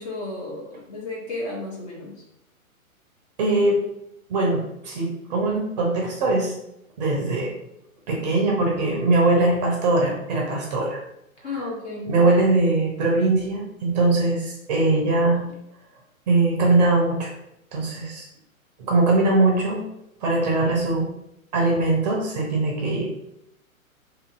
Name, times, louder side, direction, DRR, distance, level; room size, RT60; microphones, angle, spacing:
voice 1, 0.0-2.2 11.4-12.2, left 2 dB, 30° left, -3 dB, 0.6 m, -33 dB
voice 2, 3.4-3.8 4.3-6.5 7.0-7.5 8.1-11.0 12.1-15.5 16.3-17.3 17.7-18.3 18.8-19.8 20.2-21.1 21.5-23.0, right 2 dB, 30° right, -1 dB, 0.5 m, -21 dB
2.7 x 2.6 x 2.5 m, 0.82 s
figure-of-eight pair, 115°, 43 cm